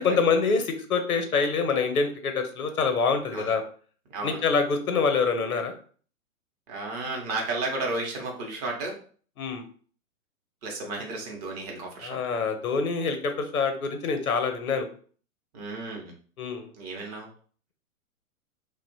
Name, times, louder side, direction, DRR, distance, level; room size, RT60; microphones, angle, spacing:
voice 1, 0.0-3.6 4.2-5.7 9.4-9.6 12.0-14.9 16.4-16.7, left 5 dB, 75° left, 7 dB, 0.7 m, -25 dB
voice 2, 6.7-9.0 10.6-12.2 15.5-16.1 16.8-17.3, right 2 dB, 30° right, 0 dB, 0.7 m, -33 dB
2.8 x 2.1 x 2.7 m, 0.43 s
figure-of-eight pair, 120°, 43 cm